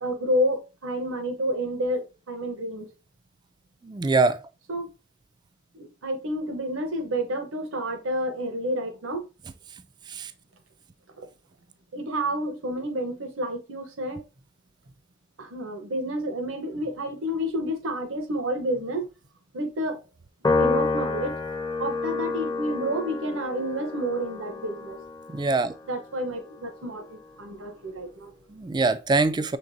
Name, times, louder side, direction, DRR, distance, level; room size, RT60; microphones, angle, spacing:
voice 1, 0.0-2.9 4.7-4.9 5.7-9.2 11.2-11.3 11.9-14.2 15.4-19.0 19.5-20.0 20.6-21.4 21.8-25.0 25.9-28.3, equal, 85° right, 0.9 m, -29 dB
voice 2, 3.8-4.4 10.1-10.3 25.3-25.7 28.5-29.6, right 3 dB, 20° right, 0.3 m, -23 dB
Piano, 20.4-27.0, left 3 dB, 20° left, 0.6 m, -29 dB
5.9 x 3.4 x 2.6 m
head